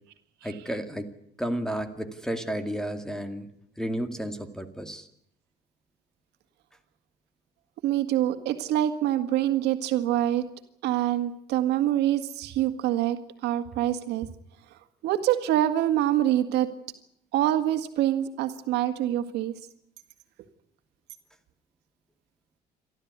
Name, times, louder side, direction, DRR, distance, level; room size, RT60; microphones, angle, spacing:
voice 1, 0.4-1.1 1.4-3.5 3.8-5.1, right 1 dB, 5° left, 8 dB, 2.3 m, -32 dB
voice 2, 7.8-10.4 10.8-14.3 15.0-16.7 17.3-19.5, right 12 dB, 80° right, 7 dB, 1.9 m, -25 dB
29.5 x 13.0 x 9.5 m, 0.74 s
cardioid pair, 110°, 17 cm